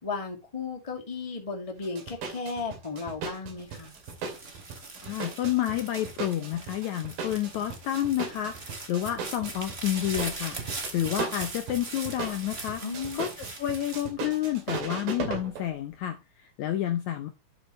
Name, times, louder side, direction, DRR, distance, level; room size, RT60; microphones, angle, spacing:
voice 1, 0.0-3.9 12.8-13.3, left 4 dB, 10° left, 1.8 m, -35 dB
sound 1, 1.8-15.6, right 5 dB, 90° right, 4.3 m, -38 dB
sound 2, 3.6-15.0 15.5-16.1, right 3 dB, 25° right, 1.5 m, -41 dB
voice 2, 5.0-12.8 13.1-17.3, left 12 dB, 70° left, 1.9 m, -30 dB
11.5 x 7.6 x 3.2 m
omnidirectional pair, 4.0 m